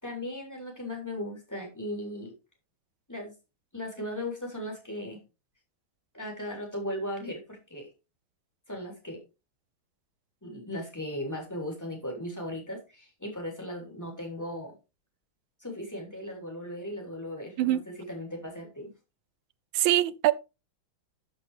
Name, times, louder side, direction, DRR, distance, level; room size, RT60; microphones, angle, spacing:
voice 1, 0.0-2.3 3.1-3.3 3.7-5.2 6.1-7.9 8.7-9.2 10.4-14.8 15.6-18.9, left 1 dB, 10° left, 3.5 m, -37 dB
voice 2, 19.7-20.3, right 14 dB, 80° right, 1.4 m, -23 dB
13.5 x 5.6 x 3.3 m
omnidirectional pair, 2.2 m